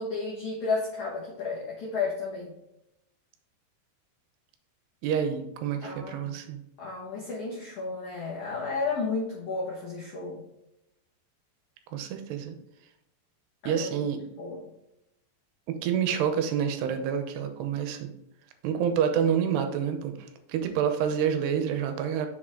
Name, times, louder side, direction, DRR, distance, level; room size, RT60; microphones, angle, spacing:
voice 1, 0.0-2.5 5.8-6.3 6.8-10.4 13.6-14.7, left 4 dB, 65° left, -5 dB, 2.0 m, -33 dB
voice 2, 5.0-6.6 11.9-12.6 13.7-14.2 15.7-18.1 18.6-20.1 20.5-22.3, right 8 dB, 90° right, 7 dB, 2.8 m, -28 dB
6.6 x 4.9 x 3.6 m, 0.86 s
omnidirectional pair, 4.8 m